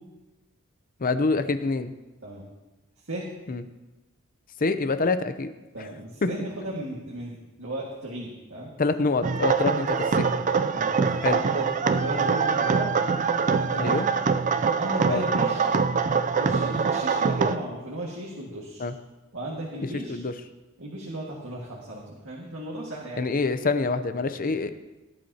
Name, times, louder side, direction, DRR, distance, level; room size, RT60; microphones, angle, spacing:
voice 1, 1.0-1.9 3.5-3.6 4.6-5.5 6.2-6.3 8.8-10.2 11.2-11.4 13.8-14.1 15.1-15.2 18.8-18.9 20.1-20.3 23.2-24.7, left 3 dB, 40° left, 10 dB, 0.6 m, -25 dB
voice 2, 5.7-8.7 9.7-9.8 10.2-10.3 10.7-11.0 11.2-14.1 14.7-15.6 16.4-18.9 19.3-20.3 20.8-23.3, right 1 dB, 70° right, -4 dB, 1.9 m, -35 dB
sound 1, 9.2-17.6, right 5 dB, 35° right, 0.4 m, -24 dB
17.5 x 11.0 x 2.9 m, 1.1 s
head